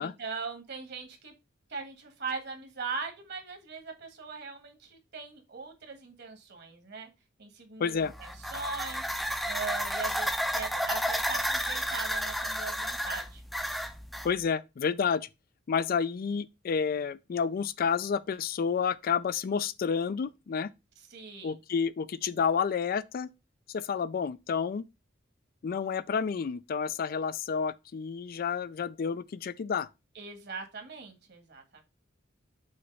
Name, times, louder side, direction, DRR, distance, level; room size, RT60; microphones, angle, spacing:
voice 1, 0.0-1.3 1.7-7.1 7.4-9.0 9.4-13.4 21.1-21.6 30.1-31.8, right 4 dB, 55° right, 1.6 m, -40 dB
voice 2, 7.8-8.1 14.2-15.3 15.7-20.7 21.4-23.3 23.7-24.8 25.6-29.9, left 6 dB, 45° left, 0.3 m, -30 dB
sound 1, 8.0-14.3, equal, ahead, 0.5 m, -32 dB
6.4 x 3.0 x 5.3 m
head